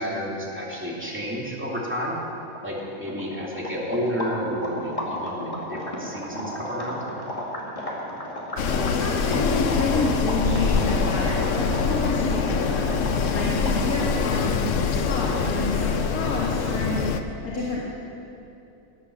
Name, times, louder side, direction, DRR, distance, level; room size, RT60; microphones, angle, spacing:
voice 1, 0.0-2.2 2.6-7.0, equal, 10° right, -5 dB, 2.7 m, -30 dB
sound 1, 2.2-2.3 2.5-14.2, equal, 25° left, 2.4 m, -34 dB
Wind, 8.6-17.2, left 6 dB, 65° left, 1.0 m, -24 dB
voice 2, 8.7-12.8 13.3-17.8, left 1 dB, 85° left, -5 dB, 2.5 m, -29 dB
18.0 x 8.3 x 7.2 m, 2.8 s
omnidirectional pair, 1.5 m